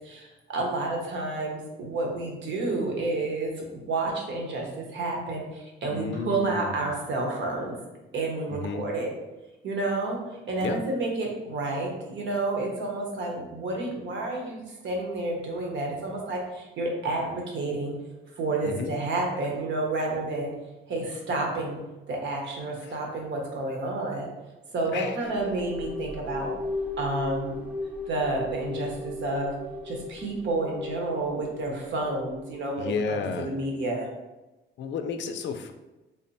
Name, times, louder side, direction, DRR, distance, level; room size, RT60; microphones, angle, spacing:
voice 1, 0.0-7.8 8.1-9.1 9.6-17.9 18.3-20.5 20.9-21.8 22.1-24.3 24.7-26.5 27.0-27.6 28.1-29.5 29.8-34.1, right 2 dB, 70° right, 0 dB, 1.0 m, -30 dB
voice 2, 5.9-6.9 8.5-8.8 10.6-10.8 18.6-18.9 22.8-22.9 24.9-25.2 32.8-33.5 34.8-35.7, left 5 dB, 65° left, 7 dB, 0.4 m, -32 dB
sound 1, 25.2-32.8, left 3 dB, 10° right, 0.5 m, -37 dB
3.5 x 2.1 x 4.1 m, 1.0 s
cardioid pair, 90°, 20 cm